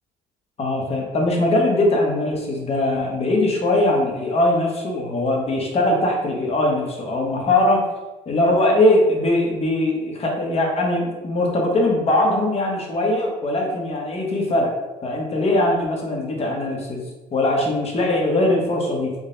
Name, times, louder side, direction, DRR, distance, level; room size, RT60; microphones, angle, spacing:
voice 1, 0.6-7.8 8.3-14.7 15.0-17.0 17.3-19.1, left 1 dB, 35° left, 0 dB, 0.9 m, -21 dB
3.8 x 2.2 x 3.8 m, 1.1 s
cardioid pair, 110°, 17 cm